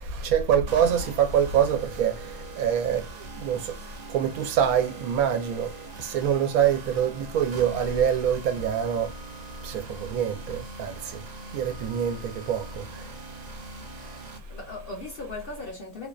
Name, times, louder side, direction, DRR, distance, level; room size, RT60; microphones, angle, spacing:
voice 1, 0.2-2.1 2.6-3.0 3.4-3.6 4.1-5.7 6.0-9.1 9.6-11.0 11.5-12.8, right 8 dB, 80° right, 1.1 m, -24 dB
sound 1, 0.7-14.4, right 3 dB, 65° right, 0.4 m, -42 dB
voice 2, 13.9-16.1, left 2 dB, 55° left, 0.6 m, -39 dB
2.5 x 2.2 x 2.3 m
omnidirectional pair, 1.5 m